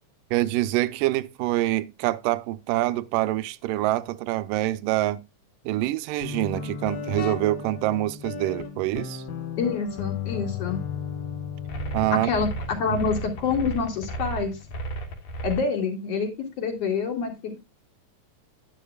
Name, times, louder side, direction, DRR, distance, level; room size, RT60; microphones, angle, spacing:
voice 1, 0.3-5.2 5.7-9.2 11.9-12.3 12.9-13.0, right 16 dB, 80° right, 2.2 m, -25 dB
Guitar, 6.2-15.7, left 7 dB, 85° left, 3.0 m, -36 dB
voice 2, 9.6-10.8 12.2-12.5 12.8-14.6 15.4-16.3 16.6-17.6, left 5 dB, 50° left, 3.0 m, -27 dB
sound 1, 11.7-15.6, right 3 dB, 65° left, 3.1 m, -33 dB
10.5 x 10.0 x 2.3 m
omnidirectional pair, 3.9 m